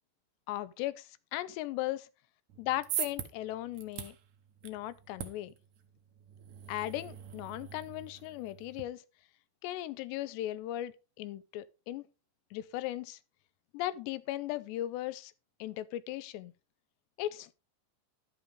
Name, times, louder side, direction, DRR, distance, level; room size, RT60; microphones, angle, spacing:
voice 1, 0.5-2.1 2.6-4.2 4.6-5.5 6.7-9.0 9.6-12.1 12.5-13.2 13.7-15.3 15.6-16.5 17.2-17.5, left 15 dB, 85° left, 2.8 m, -37 dB
sound 1, 2.5-8.8, right 10 dB, 80° right, 1.6 m, -43 dB
11.0 x 9.0 x 3.6 m
omnidirectional pair, 5.0 m